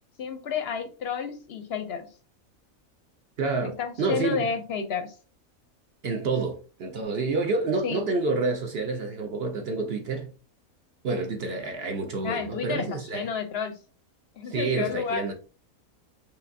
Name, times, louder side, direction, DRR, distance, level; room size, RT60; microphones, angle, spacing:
voice 1, 0.2-2.1 3.6-5.1 7.8-8.1 12.2-13.8 14.4-15.3, left 6 dB, 60° left, 0.7 m, -31 dB
voice 2, 3.4-4.5 6.0-10.3 11.0-13.3 14.4-15.3, right 3 dB, 55° right, 0.8 m, -28 dB
5.1 x 2.8 x 2.6 m
omnidirectional pair, 1.5 m